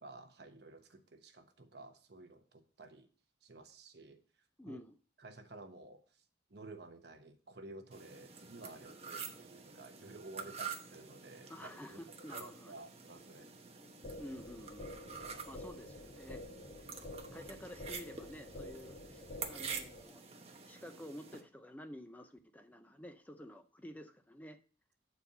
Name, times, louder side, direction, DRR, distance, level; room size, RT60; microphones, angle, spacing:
voice 1, 0.0-3.1 3.4-4.2 4.7-4.8 5.2-6.2 6.5-13.5 15.2-15.6, right 2 dB, 65° right, 6 dB, 1.2 m, -53 dB
voice 2, 4.6-5.0 11.5-12.7 14.2-14.9 15.5-16.4 16.8-16.9 17.3-20.2 20.7-24.6, equal, 10° left, 7 dB, 0.6 m, -50 dB
sound 1, 7.9-21.4, right 6 dB, 35° right, 1.1 m, -48 dB
sound 2, 14.0-20.0, left 1 dB, 55° left, 1.4 m, -49 dB
8.5 x 4.6 x 5.5 m, 0.39 s
head